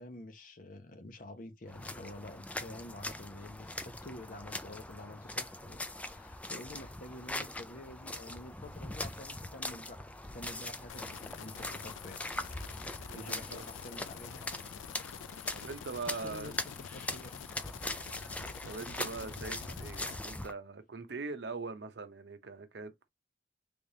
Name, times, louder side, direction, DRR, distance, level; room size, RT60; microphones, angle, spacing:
voice 1, 0.0-10.0 10.3-12.7 13.1-14.5 16.1-16.6 16.9-17.4, left 1 dB, 45° left, 0.8 m, -48 dB
sound 1, 1.7-20.5, left 2 dB, 5° left, 0.3 m, -42 dB
sound 2, 10.9-20.2, left 8 dB, 85° left, 0.4 m, -47 dB
voice 2, 13.1-13.7 15.5-16.5 18.6-23.1, right 3 dB, 60° right, 0.7 m, -42 dB
3.4 x 3.3 x 2.6 m
head